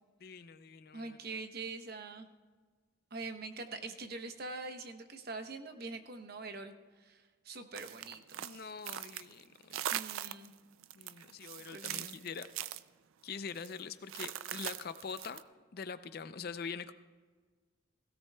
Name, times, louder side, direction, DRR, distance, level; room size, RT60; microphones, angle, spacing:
voice 1, 0.2-1.2 8.4-9.8 11.0-12.5 13.2-15.4 15.7-16.9, left 5 dB, 50° left, 12 dB, 0.5 m, -44 dB
voice 2, 0.9-2.3 3.1-8.7 9.9-10.5 11.7-12.2, right 3 dB, 50° right, 7 dB, 0.9 m, -44 dB
sound 1, 7.7-9.4 9.7-10.5 10.8-12.8 13.5-13.7 14.1-15.4, right 12 dB, 85° right, 0.4 m, -41 dB
17.0 x 16.5 x 2.3 m, 1.4 s
head